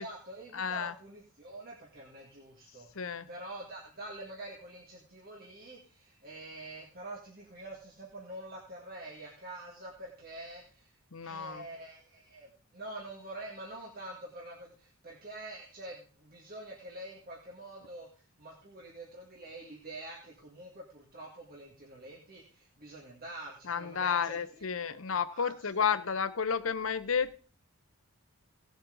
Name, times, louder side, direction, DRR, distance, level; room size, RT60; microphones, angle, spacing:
voice 1, 0.0-25.0 25.3-26.0, right 1 dB, 40° right, -2 dB, 2.0 m, -46 dB
voice 2, 0.5-0.9 3.0-3.3 11.1-11.6 23.7-27.4, left 6 dB, 65° left, 13 dB, 0.7 m, -31 dB
17.5 x 7.4 x 3.8 m, 0.37 s
head